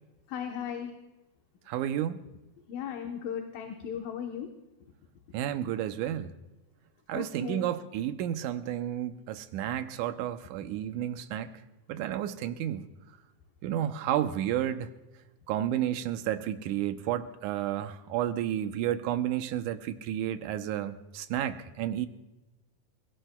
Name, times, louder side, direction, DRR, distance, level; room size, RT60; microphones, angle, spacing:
voice 1, 0.3-0.9 2.7-4.5 7.1-7.7 10.6-10.7, left 8 dB, 85° left, 3 dB, 2.8 m, -36 dB
voice 2, 1.7-2.2 5.3-6.3 7.1-11.5 11.9-12.9 13.6-14.9 15.5-22.1, right 11 dB, 75° right, 9 dB, 2.1 m, -31 dB
27.5 x 17.5 x 2.3 m, 1.0 s
omnidirectional pair, 3.8 m